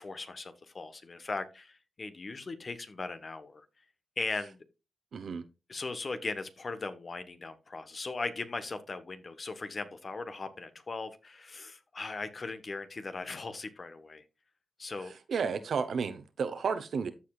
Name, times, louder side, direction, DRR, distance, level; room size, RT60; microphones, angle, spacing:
voice 1, 0.0-3.6 4.2-4.6 5.7-14.2 14.8-15.1, left 3 dB, 45° left, 1.1 m, -38 dB
voice 2, 5.1-5.4 15.3-17.1, right 5 dB, 75° right, 0.8 m, -32 dB
14.0 x 4.8 x 2.4 m
cardioid pair, 55°, 0 cm